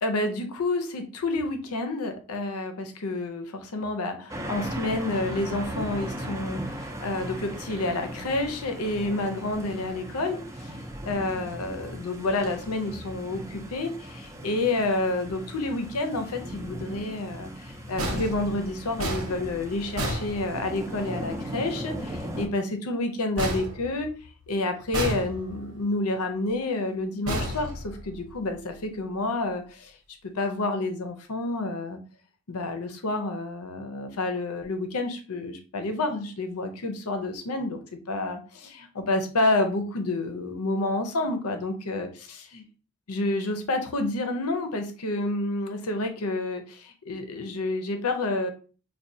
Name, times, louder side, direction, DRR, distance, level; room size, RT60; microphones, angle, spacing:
voice 1, 0.0-10.8 11.1-24.1 24.5-29.9 30.3-32.0 32.5-37.8 38.1-42.6 43.1-48.5, left 2 dB, 85° left, 6 dB, 0.7 m, -29 dB
sound 1, 4.3-22.5, equal, 15° right, 0.4 m, -38 dB
sound 2, 18.0-21.0 23.4-24.5 24.9-25.8 27.3-28.4, equal, 75° right, 1.0 m, -32 dB
4.6 x 2.3 x 2.7 m, 0.38 s
head